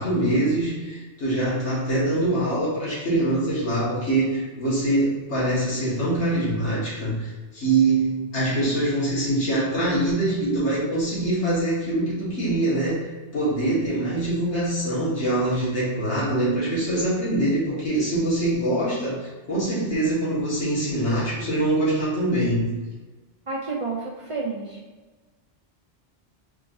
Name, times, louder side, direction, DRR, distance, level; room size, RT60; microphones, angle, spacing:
voice 1, 0.0-22.7, right 1 dB, 70° left, -9 dB, 2.0 m, -24 dB
voice 2, 23.5-24.8, right 3 dB, 50° right, -2 dB, 0.3 m, -30 dB
4.7 x 3.1 x 2.6 m, 1.3 s
omnidirectional pair, 1.2 m